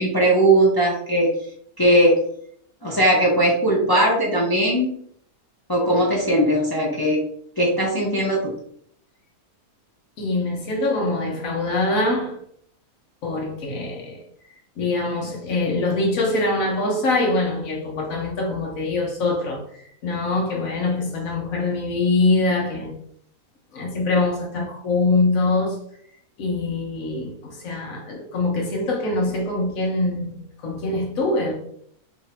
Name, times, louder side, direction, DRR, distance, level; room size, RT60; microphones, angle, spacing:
voice 1, 0.0-1.3 1.8-2.2 2.8-5.0 5.7-7.2 7.6-8.5, right 1 dB, 25° left, 0.4 m, -19 dB
voice 2, 10.2-12.4 13.2-14.2 14.8-19.6 20.0-22.9 23.7-25.8 26.4-31.5, left 2 dB, 65° left, 1.4 m, -23 dB
3.2 x 2.8 x 4.0 m
omnidirectional pair, 1.5 m